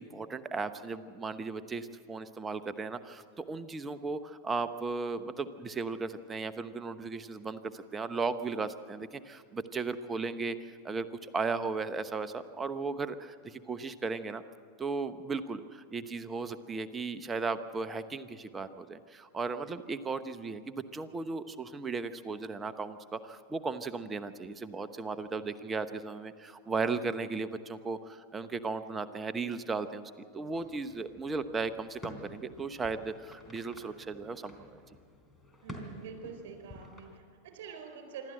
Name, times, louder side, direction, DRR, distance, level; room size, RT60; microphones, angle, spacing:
voice 1, 0.0-14.4 14.8-34.8, right 4 dB, 20° right, 12 dB, 1.0 m, -36 dB
sound 1, 30.5-37.2, left 1 dB, 5° left, 3.7 m, -50 dB
voice 2, 35.6-38.3, right 6 dB, 60° right, 6 dB, 4.4 m, -46 dB
26.5 x 12.5 x 7.9 m, 2.1 s
hypercardioid pair, 95°, 0 cm